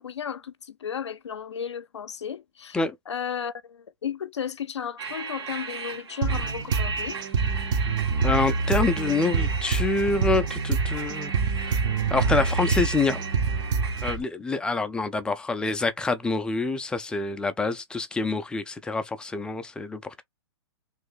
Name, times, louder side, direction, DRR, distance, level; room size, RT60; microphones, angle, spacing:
voice 1, 0.0-2.8 3.1-7.2, left 8 dB, 85° left, 0.6 m, -34 dB
sound 1, 5.0-14.2, right 5 dB, 65° right, 1.8 m, -36 dB
sound 2, 6.2-14.2, right 4 dB, 45° right, 1.0 m, -26 dB
voice 2, 8.2-11.3 11.7-11.8 12.1-13.2 14.0-20.2, left 3 dB, 5° left, 0.4 m, -26 dB
3.2 x 2.6 x 3.8 m
hypercardioid pair, 130°, 14 cm